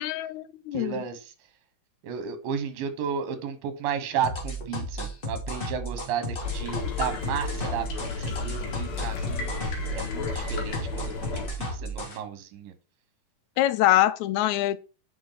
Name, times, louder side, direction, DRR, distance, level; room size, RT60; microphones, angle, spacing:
voice 1, 0.0-1.0 13.6-14.8, left 14 dB, 85° left, 1.6 m, -24 dB
voice 2, 0.7-1.3 2.0-9.5 9.9-11.4 11.7-12.7, right 7 dB, 85° right, 2.9 m, -33 dB
sound 1, 4.2-12.2, equal, 25° left, 1.2 m, -33 dB
sound 2, 6.4-11.5, left 5 dB, 60° left, 2.5 m, -33 dB
8.0 x 5.2 x 3.9 m
omnidirectional pair, 3.9 m